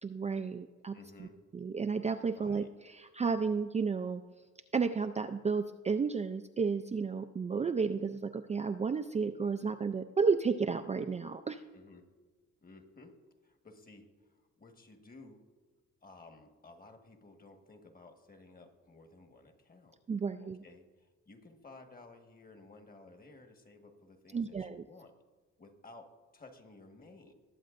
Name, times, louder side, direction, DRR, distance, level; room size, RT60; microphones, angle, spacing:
voice 1, 0.0-1.3 1.5-4.2 4.7-11.6 20.1-20.6 24.3-24.8, right 5 dB, 25° right, 7 dB, 0.4 m, -32 dB
voice 2, 0.9-1.4 2.3-2.7 11.7-12.1 12.6-13.2 13.4-14.1 14.4-15.4 16.0-20.0 20.4-25.2 25.6-27.3, left 3 dB, 30° left, 5 dB, 1.5 m, -55 dB
20.5 x 7.6 x 2.5 m, 1.3 s
cardioid pair, 90°, 30 cm